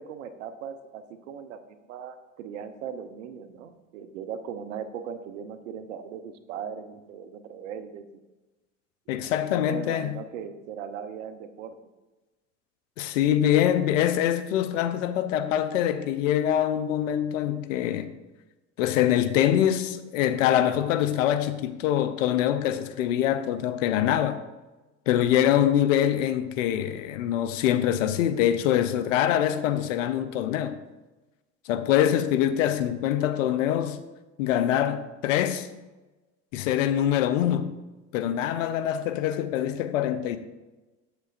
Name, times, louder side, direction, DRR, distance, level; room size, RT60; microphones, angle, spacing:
voice 1, 0.0-8.2 9.2-11.8, right 7 dB, 80° right, 0.8 m, -39 dB
voice 2, 9.1-10.2 13.0-18.1 18.8-24.4 25.1-30.8 31.7-34.0 34.4-35.7 36.5-37.7 38.1-40.4, left 11 dB, 80° left, 0.7 m, -24 dB
8.1 x 7.6 x 2.5 m
hypercardioid pair, 80°, 38 cm